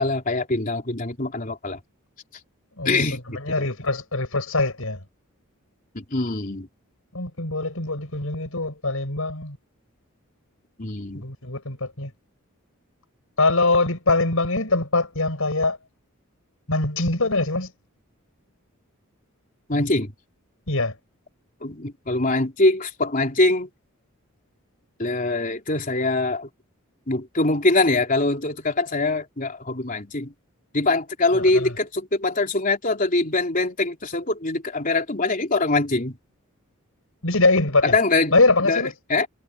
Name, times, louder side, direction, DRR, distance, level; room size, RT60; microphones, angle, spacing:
voice 1, 0.0-1.8 2.9-3.7 5.9-6.7 10.8-11.2 19.7-20.1 21.6-23.7 25.0-26.5 27.1-30.3 30.7-36.2 37.8-38.4 38.7-38.8 39.1-39.3, left 2 dB, 40° left, 3.6 m, -23 dB
voice 2, 2.8-5.0 7.1-9.6 11.2-12.1 13.4-15.8 16.7-17.7 20.7-20.9 31.3-31.7 37.2-37.9 38.3-38.9, left 3 dB, 75° left, 6.0 m, -23 dB
head